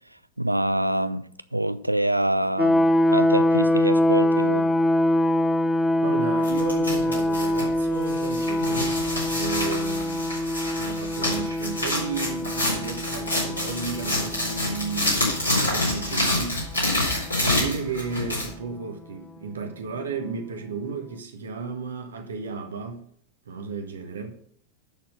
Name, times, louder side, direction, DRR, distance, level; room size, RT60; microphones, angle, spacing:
voice 1, 0.4-1.2 1.5-4.7 6.9-7.0, right 1 dB, 85° right, 0.4 m, -25 dB
sound 1, 2.6-16.4, left 1 dB, 10° left, 0.5 m, -24 dB
voice 2, 6.0-9.0 9.3-16.9 17.3-23.1 23.4-24.4, right 5 dB, 65° right, 1.3 m, -34 dB
sound 2, 6.4-18.5, left 1 dB, 80° left, 4.1 m, -28 dB
10.0 x 4.4 x 6.6 m
figure-of-eight pair, 90°, 0 cm